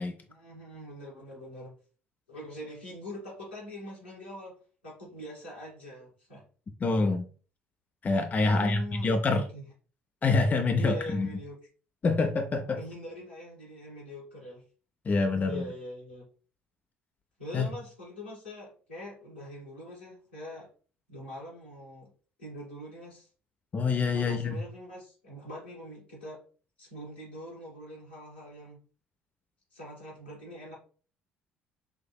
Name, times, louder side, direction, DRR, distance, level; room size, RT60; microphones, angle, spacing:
voice 1, 0.3-1.7 2.3-6.4 8.4-9.6 10.8-11.6 12.7-14.6 15.4-16.2 17.4-20.7 21.1-22.1 22.4-23.3 24.1-26.4 26.8-28.8 29.7-30.8, equal, 85° left, -6 dB, 1.6 m, -43 dB
voice 2, 6.8-7.2 8.0-9.4 10.2-11.3 12.0-12.8 15.1-15.6 17.5-17.7 23.7-24.6, left 3 dB, 30° left, 5 dB, 0.5 m, -26 dB
5.7 x 2.6 x 2.2 m, 0.39 s
figure-of-eight pair, 50°, 6 cm